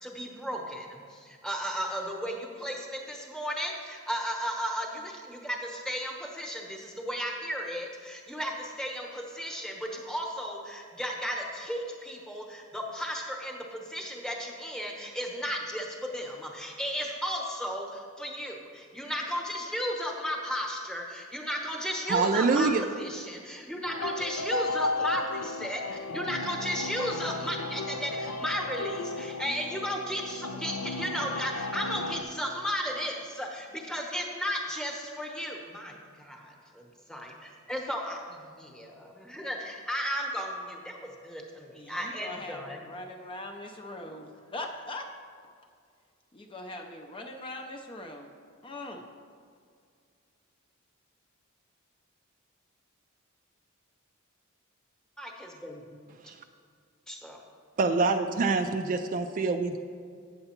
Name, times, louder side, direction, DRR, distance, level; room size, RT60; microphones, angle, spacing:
voice 1, 0.0-42.8 55.2-55.8 57.1-57.4, equal, 5° left, 0 dB, 0.9 m, -35 dB
voice 2, 22.1-22.8 57.8-59.8, right 4 dB, 40° right, 7 dB, 0.3 m, -25 dB
sound 1, 23.8-32.2, left 2 dB, 90° left, 0.4 m, -34 dB
voice 3, 41.7-45.1 46.3-48.3 48.6-49.0, left 2 dB, 25° left, 3 dB, 0.5 m, -41 dB
8.7 x 6.7 x 4.3 m, 2.2 s
head